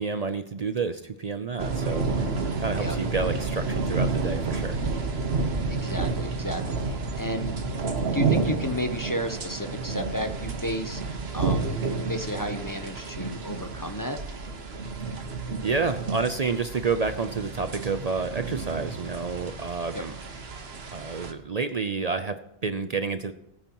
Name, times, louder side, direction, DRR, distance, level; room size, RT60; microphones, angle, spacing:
voice 1, 0.0-2.1 2.6-4.8 15.6-20.2 20.9-23.3, right 4 dB, 45° right, 9 dB, 0.6 m, -29 dB
sound 1, 1.6-21.3, right 4 dB, 75° right, 1.5 m, -30 dB
voice 2, 5.4-7.5 8.1-11.0 11.3-14.2 19.9-20.0, equal, 20° left, 6 dB, 0.7 m, -32 dB
21.0 x 9.1 x 3.0 m, 0.87 s
omnidirectional pair, 1.1 m